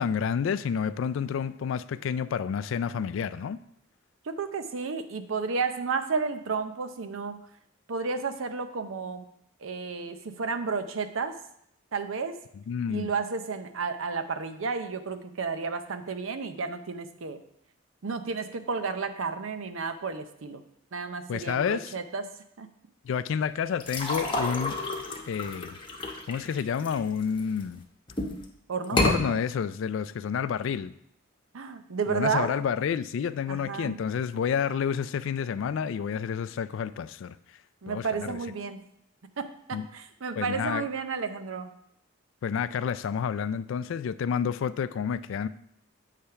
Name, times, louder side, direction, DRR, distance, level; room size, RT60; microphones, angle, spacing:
voice 1, 0.0-3.6 12.7-13.1 21.3-21.9 23.0-24.8 25.3-25.8 26.3-27.8 28.9-30.9 32.1-37.4 37.9-38.4 39.7-39.9 40.3-40.9 42.4-45.5, left 7 dB, 65° left, 14 dB, 0.3 m, -29 dB
voice 2, 4.3-7.4 7.9-9.3 9.6-11.4 11.9-12.4 12.9-17.4 18.0-20.6 20.9-22.3 22.6-22.7 28.7-29.4 31.5-32.6 33.5-33.9 37.8-38.8 39.4-41.8, right 5 dB, 75° right, 9 dB, 0.6 m, -32 dB
sound 1, 23.8-27.6 28.1-28.5 28.8-29.2, left 1 dB, 25° left, 0.9 m, -30 dB
8.2 x 3.3 x 5.6 m, 0.73 s
head